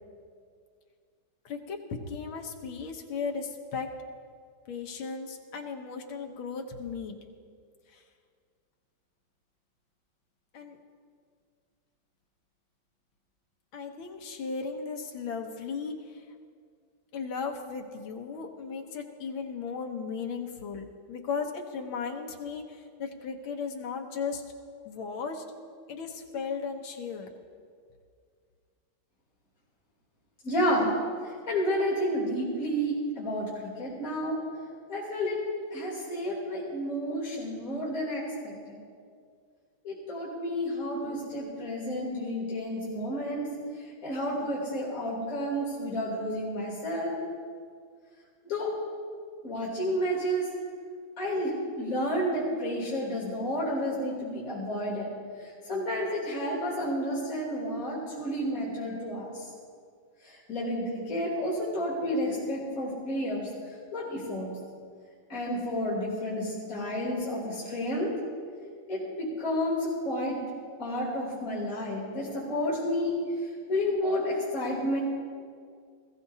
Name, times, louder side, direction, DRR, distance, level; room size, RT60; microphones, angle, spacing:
voice 1, 1.5-3.9 4.7-7.2 7.9-8.0 10.5-10.8 13.7-15.9 17.1-24.4 24.9-25.4 25.9-27.3, left 5 dB, 70° left, 3 dB, 1.8 m, -36 dB
voice 2, 30.4-30.9 31.2-34.4 34.9-35.4 35.7-38.8 39.8-43.5 43.7-47.2 48.4-48.7 49.4-50.5 51.2-55.1 55.4-59.5 60.2-64.5 65.3-68.1 68.9-70.4 70.8-75.0, equal, 35° left, -8 dB, 3.6 m, -31 dB
20.5 x 15.0 x 2.8 m, 2.1 s
omnidirectional pair, 2.4 m